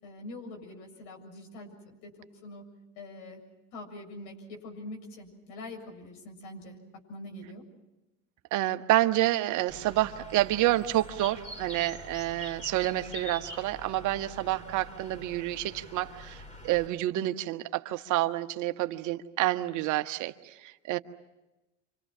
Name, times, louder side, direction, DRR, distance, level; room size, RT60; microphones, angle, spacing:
voice 1, 0.0-2.6 3.0-3.4 3.7-6.8 7.1-7.6, left 2 dB, 70° left, 3 dB, 7.3 m, -44 dB
voice 2, 8.5-21.0, right 16 dB, 55° right, 9 dB, 1.3 m, -28 dB
Bird, 9.7-16.9, left 1 dB, 20° left, 3.7 m, -45 dB
29.5 x 26.0 x 6.2 m, 1.0 s
hypercardioid pair, 80°, 37 cm